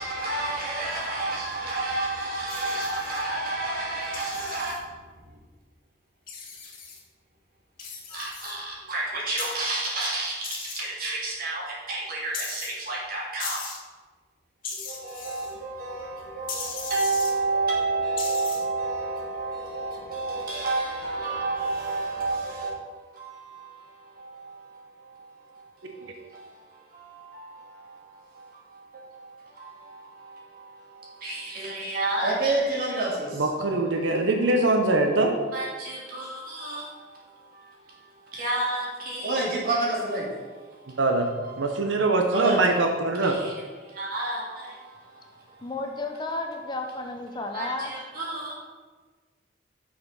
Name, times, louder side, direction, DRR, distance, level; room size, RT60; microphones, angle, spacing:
voice 1, 0.0-4.7 8.1-8.6 8.9-10.5 10.8-13.6 15.0-15.5 15.8-16.1 16.4-22.7 31.2-33.3 35.5-36.8 38.3-40.2 42.3-42.8 43.2-43.4 44.0-44.4 47.5-48.5, right 2 dB, 50° right, 2.3 m, -29 dB
sound 1, 2.5-3.2 4.1-4.8 6.3-7.0 7.8-8.5 9.4-9.5 10.4-10.8 12.3-12.7 13.4-13.8 14.6-15.5 16.5-17.3 18.2-18.6, left 5 dB, 50° left, 1.6 m, -37 dB
voice 2, 33.4-35.3 41.0-41.3 41.6-43.3, right 2 dB, 80° right, 0.8 m, -23 dB
voice 3, 45.6-47.9, left 2 dB, 25° left, 0.7 m, -32 dB
6.3 x 6.0 x 5.4 m
head